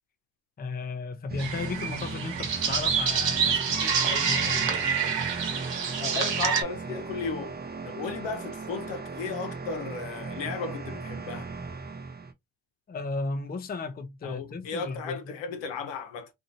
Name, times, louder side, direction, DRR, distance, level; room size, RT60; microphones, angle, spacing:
voice 1, 0.6-4.8 12.9-15.4, left 3 dB, 20° left, 0.5 m, -35 dB
sound 1, 1.3-12.3, right 4 dB, 20° right, 0.6 m, -37 dB
sound 2, 1.4-6.6, right 6 dB, 70° right, 1.1 m, -27 dB
voice 2, 6.0-7.5 7.9-11.5 14.2-16.3, left 5 dB, 70° left, 0.9 m, -35 dB
2.7 x 2.6 x 2.8 m
hypercardioid pair, 50°, 45 cm